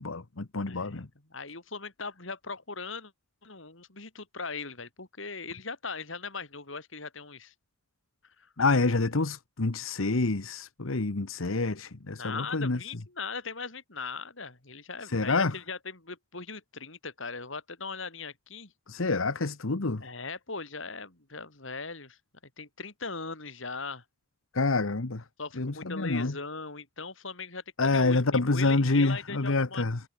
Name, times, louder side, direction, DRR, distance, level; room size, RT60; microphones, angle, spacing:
voice 1, 0.0-1.0 8.6-12.8 15.1-15.5 18.9-20.0 24.5-25.2 25.6-26.3 27.8-30.0, left 3 dB, 90° left, 1.2 m, -27 dB
voice 2, 0.7-3.1 3.4-7.5 8.4-8.5 12.2-18.7 20.0-22.2 22.6-24.0 25.4-29.9, left 4 dB, 70° left, 4.1 m, -39 dB
head